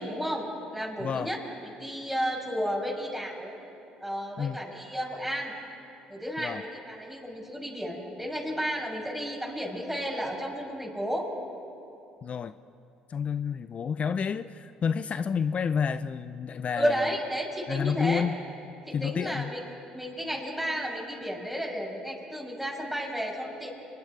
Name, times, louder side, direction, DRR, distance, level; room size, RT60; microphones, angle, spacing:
voice 1, 0.0-1.4 1.6-3.5 4.0-5.5 6.1-11.3 16.8-18.2 18.9-19.6 19.9-23.7, equal, 5° right, -3 dB, 6.0 m, -32 dB
voice 2, 1.0-1.3 4.4-4.6 6.4-6.6 12.2-12.5 13.1-17.0 17.7-18.4 18.9-19.5, left 6 dB, 45° left, 12 dB, 0.6 m, -29 dB
29.0 x 21.5 x 4.9 m, 2.7 s
hypercardioid pair, 65°, 3 cm